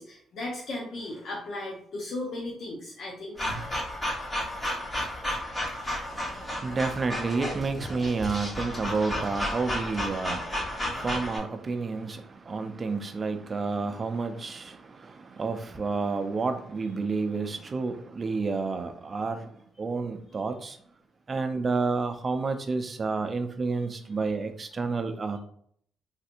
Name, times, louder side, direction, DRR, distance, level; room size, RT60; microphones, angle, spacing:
voice 1, 0.0-3.4 5.8-6.5 9.8-9.9, left 2 dB, 65° left, 0.7 m, -37 dB
sound 1, 3.4-11.4, left 1 dB, 20° left, 1.2 m, -32 dB
voice 2, 6.1-19.5 19.8-20.8 21.3-25.4, right 4 dB, 35° right, 0.4 m, -30 dB
3.2 x 2.7 x 2.5 m
cardioid pair, 90°, 0 cm